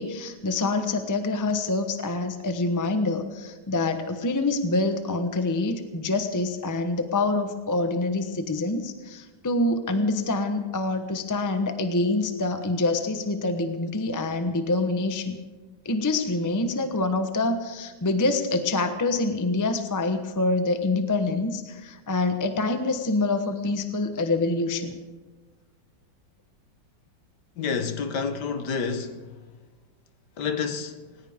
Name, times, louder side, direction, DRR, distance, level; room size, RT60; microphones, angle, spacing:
voice 1, 0.0-15.4 15.8-24.9, left 2 dB, 15° left, 0.6 m, -26 dB
voice 2, 27.6-29.2 30.4-31.0, left 5 dB, 65° left, 1.5 m, -29 dB
19.0 x 19.0 x 3.6 m
omnidirectional pair, 2.1 m